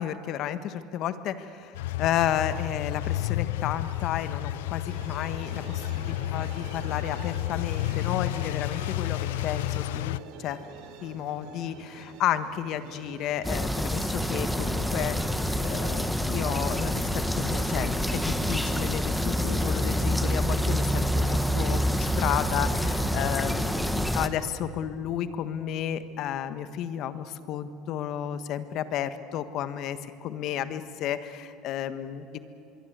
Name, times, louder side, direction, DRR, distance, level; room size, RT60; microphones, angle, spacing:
voice 1, 0.0-10.6 11.0-15.3 15.6-32.4, left 10 dB, 60° left, 11 dB, 1.5 m, -32 dB
sound 1, 1.7-10.2, left 16 dB, 85° left, 0.5 m, -31 dB
sound 2, 4.9-20.2, right 5 dB, 70° right, 3.3 m, -47 dB
sound 3, 13.4-24.3, equal, ahead, 1.4 m, -27 dB
25.5 x 22.5 x 8.2 m, 2.8 s
supercardioid pair, 95°, 0 cm